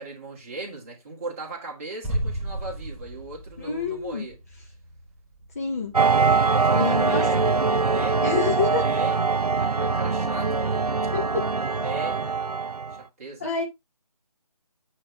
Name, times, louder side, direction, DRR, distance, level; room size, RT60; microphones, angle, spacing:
voice 1, 0.0-4.4 6.5-7.5 7.7-8.3 8.7-9.2 9.5-10.8 11.6-12.2 12.9-13.5, right 2 dB, 25° right, 2.0 m, -38 dB
sound 1, 2.0-7.8 8.0-8.1, right 1 dB, 5° right, 1.0 m, -35 dB
voice 2, 3.6-4.3 5.5-5.9 6.7-7.2 8.2-8.8 11.1-11.4 13.4-13.6, left 5 dB, 25° left, 1.0 m, -27 dB
sound 2, 5.9-13.0, right 4 dB, 85° right, 0.6 m, -23 dB
8.7 x 3.4 x 3.4 m
figure-of-eight pair, 160°, 19 cm